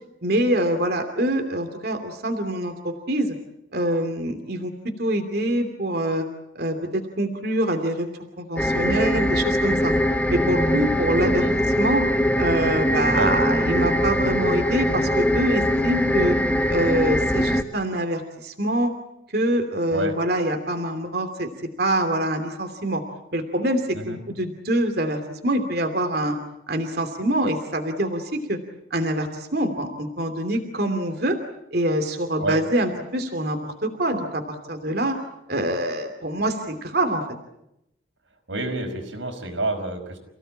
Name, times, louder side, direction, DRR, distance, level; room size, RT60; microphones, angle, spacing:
voice 1, 0.2-3.4 3.7-4.7 5.0-6.2 6.5-8.1 8.4-9.9 10.3-11.4 11.8-12.0 12.4-16.4 16.7-18.9 19.3-21.5 21.8-23.0 23.3-26.4 26.7-28.6 28.9-31.4 31.7-35.2 35.5-37.2, right 1 dB, 55° right, 5 dB, 2.8 m, -25 dB
sound 1, 8.6-17.6, equal, 10° left, 1.3 m, -22 dB
voice 2, 11.1-11.5 13.1-13.3 19.9-20.1 23.9-24.2 32.4-32.6 38.5-40.2, right 2 dB, 85° right, 6 dB, 5.4 m, -28 dB
29.0 x 17.0 x 8.8 m, 0.84 s
head